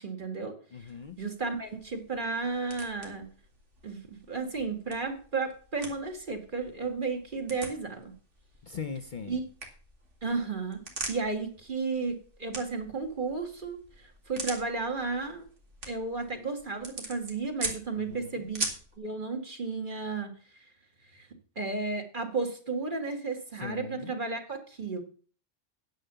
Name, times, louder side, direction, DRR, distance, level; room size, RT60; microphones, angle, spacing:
voice 1, 0.0-0.9 1.2-3.3 3.8-8.1 9.3-9.4 10.2-10.8 11.1-15.4 15.8-18.7 19.0-20.3 21.1-21.3 21.6-25.0, right 4 dB, 45° right, 4 dB, 2.0 m, -33 dB
voice 2, 0.7-1.2 8.6-9.4 17.9-18.5 23.6-24.1, left 6 dB, 45° left, 11 dB, 0.8 m, -40 dB
sound 1, 0.8-19.0, right 2 dB, 75° right, 2.5 m, -43 dB
9.9 x 7.1 x 6.8 m, 0.42 s
omnidirectional pair, 1.3 m